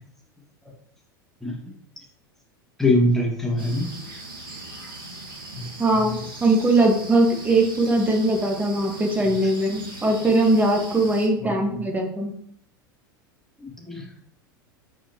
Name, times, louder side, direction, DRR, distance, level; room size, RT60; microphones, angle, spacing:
voice 1, 2.8-3.9 5.6-5.7 5.9-6.2 9.3-9.4 11.4-11.8 13.6-14.1, left 1 dB, 5° left, -1 dB, 2.1 m, -24 dB
sound 1, 3.6-11.3, right 2 dB, 80° right, 1.6 m, -39 dB
voice 2, 5.8-12.3, right 2 dB, 15° right, 2 dB, 1.7 m, -21 dB
8.6 x 4.9 x 3.0 m, 0.65 s
hypercardioid pair, 85°, 12 cm